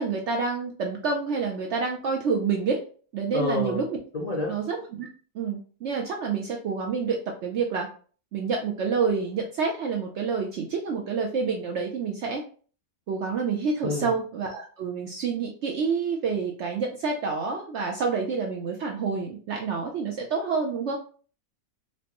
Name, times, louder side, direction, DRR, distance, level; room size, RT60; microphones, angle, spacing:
voice 1, 0.0-2.8 3.1-4.0 4.5-5.1 5.3-7.2 7.4-7.9 8.3-12.4 13.1-21.0, right 5 dB, 70° right, 1 dB, 0.6 m, -28 dB
voice 2, 3.3-3.9 4.1-4.6 13.8-14.1, left 2 dB, 85° left, -2 dB, 0.3 m, -28 dB
4.4 x 2.1 x 2.9 m, 0.41 s
omnidirectional pair, 1.7 m